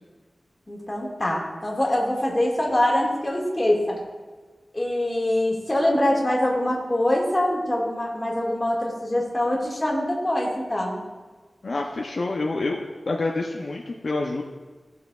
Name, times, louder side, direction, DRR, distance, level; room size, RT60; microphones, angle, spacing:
voice 1, 0.7-4.0 4.7-11.0, left 1 dB, 25° left, -3 dB, 2.0 m, -24 dB
voice 2, 11.6-14.4, left 2 dB, 65° left, 0 dB, 0.6 m, -27 dB
14.5 x 5.8 x 2.4 m, 1.3 s
wide cardioid pair, 85°, 0 cm